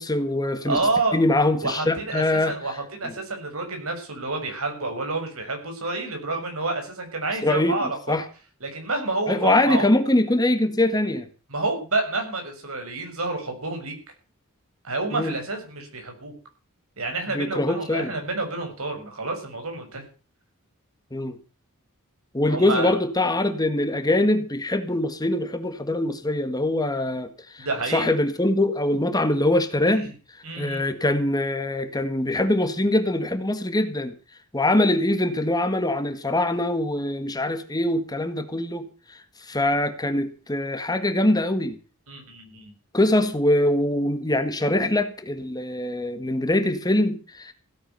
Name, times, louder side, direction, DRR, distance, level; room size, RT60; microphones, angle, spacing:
voice 1, 0.0-0.8 1.1-2.6 3.0-3.1 7.4-7.8 8.1-8.3 9.3-11.3 15.1-15.4 17.3-18.1 21.1-21.4 22.3-30.1 30.6-34.1 34.5-41.8 42.9-47.5, left 1 dB, 20° left, 1.8 m, -23 dB
voice 2, 0.7-1.2 1.6-8.2 8.6-9.9 11.5-13.9 14.8-16.3 17.0-20.0 22.5-22.9 27.6-28.1 29.9-30.1 30.4-30.8 42.1-42.7, right 3 dB, 75° right, 6.7 m, -29 dB
16.5 x 10.0 x 6.8 m
head